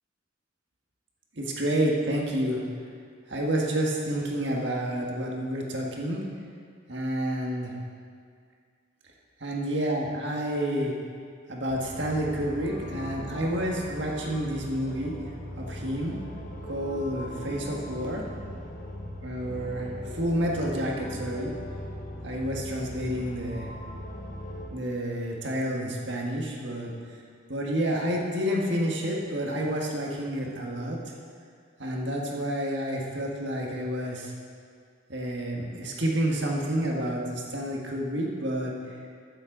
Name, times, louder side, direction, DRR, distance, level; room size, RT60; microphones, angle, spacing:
voice 1, 1.4-2.6 3.3-6.2 6.9-7.7 9.4-10.9 11.5-15.1 15.6-16.2 16.7-18.2 19.2-21.5 22.2-23.7 24.7-26.9 27.5-31.0 31.8-34.3 35.1-38.7, right 1 dB, 60° right, -2 dB, 1.7 m, -29 dB
sound 1, 11.7-24.7, equal, 45° left, 1.3 m, -39 dB
14.5 x 7.7 x 4.0 m, 2.1 s
head